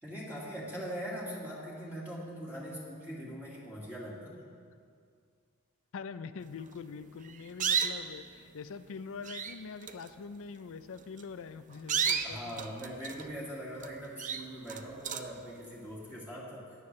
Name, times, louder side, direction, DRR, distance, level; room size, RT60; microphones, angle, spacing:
voice 1, 0.0-4.4 12.2-16.9, equal, 10° right, -7 dB, 1.9 m, -41 dB
voice 2, 5.9-12.7, left 5 dB, 65° left, 13 dB, 0.4 m, -44 dB
sound 1, 7.1-8.2 8.9-9.0 9.2-9.6 9.8-10.1 11.0-11.2 11.7-13.4 13.8-13.9 14.2-15.4, right 7 dB, 35° right, 0.5 m, -33 dB
15.5 x 10.0 x 3.2 m, 2.2 s
head